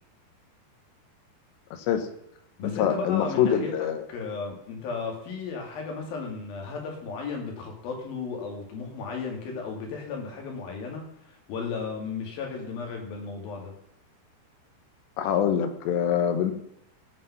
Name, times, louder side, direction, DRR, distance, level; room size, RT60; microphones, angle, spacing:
voice 1, 1.7-2.1 2.6-4.0 15.2-16.5, left 9 dB, 80° left, 8 dB, 3.4 m, -25 dB
voice 2, 2.6-13.7, left 5 dB, 60° left, 1 dB, 4.1 m, -35 dB
16.5 x 5.7 x 5.7 m, 0.78 s
omnidirectional pair, 5.0 m